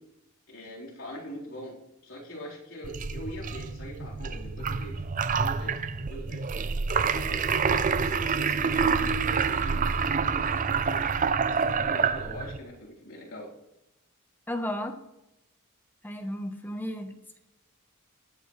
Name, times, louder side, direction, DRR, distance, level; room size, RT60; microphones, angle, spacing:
voice 1, 0.5-5.1 5.4-6.5 6.9-10.4 10.7-11.1 11.5-13.5, equal, 65° left, -5 dB, 4.0 m, -42 dB
sound 1, 2.8-12.6, right 5 dB, 40° right, 0.5 m, -27 dB
voice 2, 14.5-15.0 16.0-17.4, left 1 dB, 10° left, 6 dB, 1.0 m, -34 dB
18.5 x 8.8 x 3.2 m, 0.91 s
head